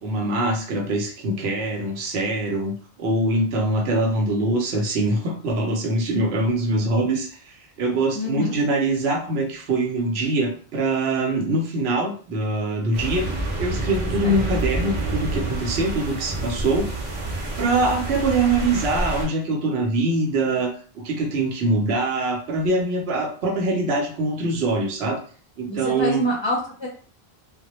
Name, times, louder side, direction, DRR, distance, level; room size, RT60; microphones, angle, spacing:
voice 1, 0.0-7.3 7.8-13.3 13.6-16.9 17.6-25.2 25.6-26.2, right 2 dB, 80° right, 1 dB, 0.9 m, -23 dB
voice 2, 8.1-8.6 14.2-14.6 25.7-26.9, equal, 35° left, -4 dB, 0.5 m, -27 dB
sound 1, 12.9-19.2, right 2 dB, 40° right, 0.7 m, -28 dB
2.2 x 2.0 x 2.9 m, 0.42 s
omnidirectional pair, 1.1 m